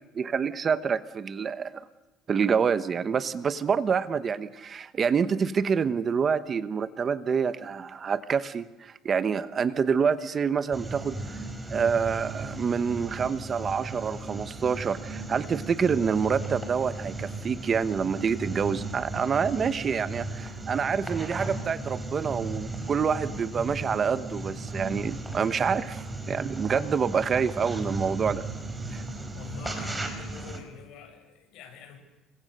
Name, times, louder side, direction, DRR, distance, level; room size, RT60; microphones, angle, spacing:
voice 1, 0.1-1.8 2.3-11.4 11.7-28.4 28.9-29.0, right 6 dB, 30° right, 14 dB, 1.1 m, -27 dB
sound 1, 10.7-30.6, right 2 dB, 10° right, 4.2 m, -36 dB
voice 2, 23.5-24.0 29.3-32.0, left 6 dB, 65° left, 4 dB, 7.7 m, -45 dB
29.5 x 24.5 x 6.7 m, 1.1 s
cardioid pair, 155°, 0 cm